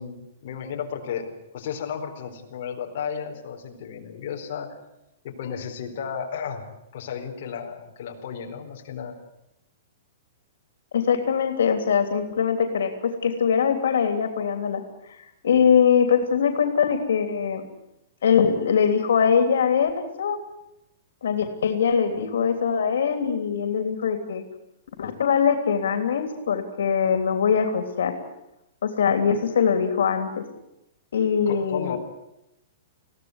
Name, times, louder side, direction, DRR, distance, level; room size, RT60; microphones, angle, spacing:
voice 1, 0.0-4.7 5.2-6.6 6.9-9.2 31.5-32.0, left 7 dB, 45° left, 1 dB, 4.5 m, -33 dB
voice 2, 10.9-14.8 15.4-17.6 18.2-19.9 20.2-20.4 21.2-24.4 25.0-28.1 28.8-30.4 31.1-32.0, left 7 dB, 90° left, 7 dB, 3.3 m, -22 dB
22.5 x 16.5 x 9.8 m, 0.88 s
hypercardioid pair, 175°, 0 cm